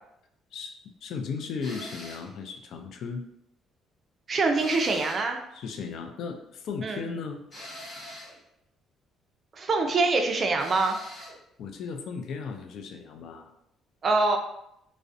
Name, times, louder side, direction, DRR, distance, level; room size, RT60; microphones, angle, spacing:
voice 1, 0.5-3.2 5.5-7.4 11.6-13.5, left 5 dB, 70° left, 4 dB, 0.3 m, -36 dB
sound 1, 1.6-2.3 4.6-5.3 7.5-8.4 10.6-11.4, left 1 dB, 35° left, 1.1 m, -42 dB
voice 2, 4.3-5.4 6.8-7.1 9.5-11.0 14.0-14.4, right 3 dB, 40° right, 4 dB, 0.4 m, -24 dB
2.4 x 2.0 x 2.5 m, 0.79 s
cardioid pair, 100°, 0 cm